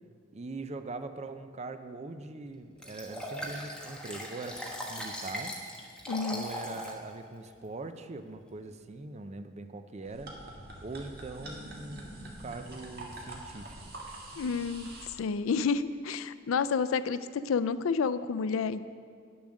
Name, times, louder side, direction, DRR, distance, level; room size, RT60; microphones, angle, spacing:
voice 1, 0.3-5.6 6.3-10.4 10.8-13.9, right 3 dB, 35° right, 9 dB, 0.5 m, -42 dB
Liquid, 2.8-7.0 7.5-7.6, equal, 5° left, 1.2 m, -39 dB
voice 2, 6.1-6.4 14.4-14.9 15.2-18.8, left 5 dB, 85° left, 15 dB, 0.4 m, -30 dB
sound 1, 10.1-15.1, right 1 dB, 50° right, 1.7 m, -45 dB
9.9 x 7.0 x 6.4 m, 2.1 s
head